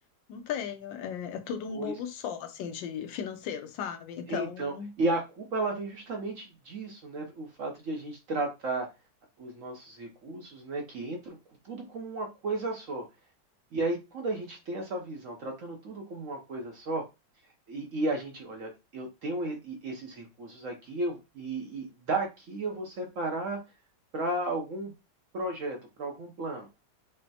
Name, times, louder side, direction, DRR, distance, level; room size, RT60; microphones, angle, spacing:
voice 1, 0.3-4.9, left 8 dB, 75° left, 1.3 m, -36 dB
voice 2, 4.3-8.9 9.4-11.4 11.6-13.0 13.7-17.0 17.7-23.6 24.1-24.9 25.3-26.7, right 2 dB, 60° right, 0.8 m, -34 dB
5.4 x 2.0 x 2.7 m
omnidirectional pair, 2.1 m